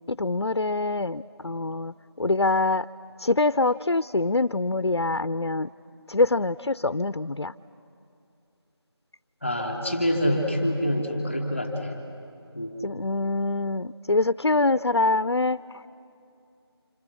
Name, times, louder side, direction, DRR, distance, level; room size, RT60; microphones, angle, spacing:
voice 1, 0.1-1.9 2.2-2.9 3.2-5.7 6.1-7.5 12.8-15.6, left 2 dB, 70° left, 14 dB, 0.6 m, -24 dB
voice 2, 9.4-12.0 12.5-12.7, equal, ahead, 2 dB, 2.1 m, -26 dB
28.5 x 27.0 x 7.0 m, 2.6 s
figure-of-eight pair, 175°, 14 cm